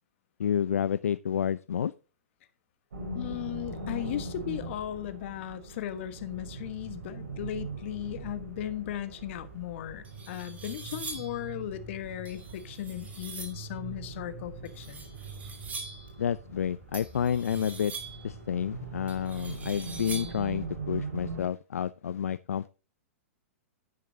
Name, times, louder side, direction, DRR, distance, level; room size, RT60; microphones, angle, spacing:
voice 1, 0.4-1.9 16.2-17.9 18.2-22.7, left 8 dB, 80° left, 0.4 m, -30 dB
sound 1, 2.9-21.4, right 3 dB, 80° right, 5.7 m, -41 dB
voice 2, 3.1-15.0, left 11 dB, 55° left, 1.4 m, -37 dB
sound 2, 9.5-9.6 10.0-11.4 12.3-13.7 14.7-16.1 16.9-18.3 19.1-20.5, right 4 dB, 20° right, 2.8 m, -43 dB
10.5 x 9.4 x 2.8 m
hypercardioid pair, 110°, 8 cm